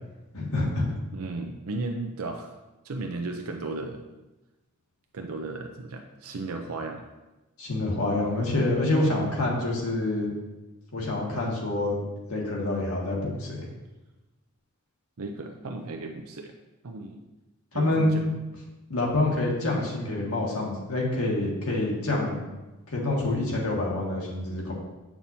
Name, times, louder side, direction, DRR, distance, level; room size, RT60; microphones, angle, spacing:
voice 1, 0.3-0.9 7.6-10.3 10.9-12.0 12.3-13.7 17.7-18.1 18.9-22.5 22.9-24.7, left 2 dB, 80° left, -3 dB, 1.8 m, -27 dB
voice 2, 1.1-2.5 2.8-4.0 5.1-7.0 15.2-16.5 16.8-17.2 17.7-18.4, right 2 dB, 75° right, 4 dB, 0.6 m, -35 dB
8.6 x 5.8 x 2.8 m, 1.1 s
head